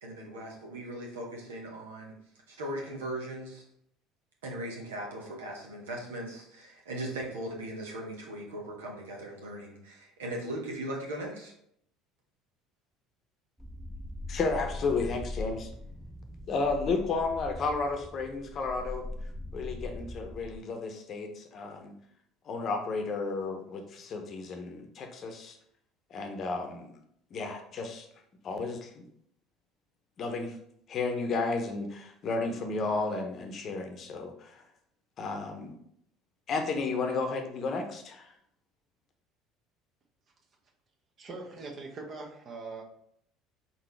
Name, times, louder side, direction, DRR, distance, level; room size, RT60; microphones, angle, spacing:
voice 1, 0.0-2.1 2.5-3.6 4.4-11.5, right 1 dB, 80° right, -1 dB, 1.1 m, -39 dB
sound 1, 13.6-20.6, left 2 dB, ahead, 0.4 m, -41 dB
voice 2, 14.3-15.7 16.5-19.0 19.5-21.9 22.5-25.6 26.1-26.9 27.3-28.1 28.4-28.9 30.2-30.6 30.9-34.5 35.2-35.8 36.5-38.3, left 3 dB, 45° left, 5 dB, 0.8 m, -32 dB
voice 3, 41.2-42.8, right 3 dB, 45° right, 1 dB, 1.1 m, -41 dB
4.2 x 3.9 x 3.2 m, 0.70 s
hypercardioid pair, 65°, 0 cm